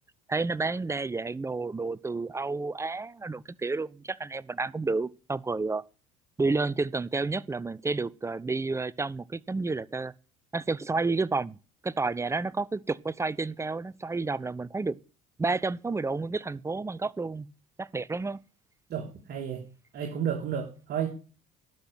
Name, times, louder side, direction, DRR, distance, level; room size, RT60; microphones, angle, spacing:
voice 1, 0.3-5.8 6.4-10.1 10.5-11.6 11.8-15.0 15.4-17.5 17.8-18.4, right 3 dB, 15° right, 0.6 m, -30 dB
voice 2, 18.9-19.6 19.9-21.1, right 8 dB, 55° right, 2.1 m, -32 dB
11.5 x 5.9 x 8.1 m
hypercardioid pair, 60°, 20 cm